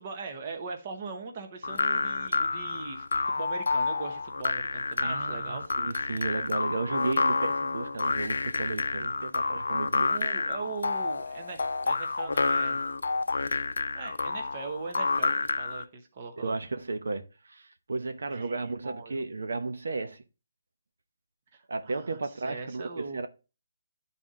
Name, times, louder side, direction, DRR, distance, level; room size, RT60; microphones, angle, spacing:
voice 1, 0.0-5.6 10.1-12.8 13.9-16.6 18.3-19.3 21.5-22.2 22.4-23.3, right 4 dB, 25° right, 1.0 m, -40 dB
sound 1, 1.6-15.8, left 3 dB, 90° left, 0.5 m, -29 dB
voice 2, 5.0-10.1 16.4-20.2 21.7-23.3, right 3 dB, 80° right, 1.0 m, -34 dB
10.5 x 4.2 x 3.7 m
hypercardioid pair, 175°, 0 cm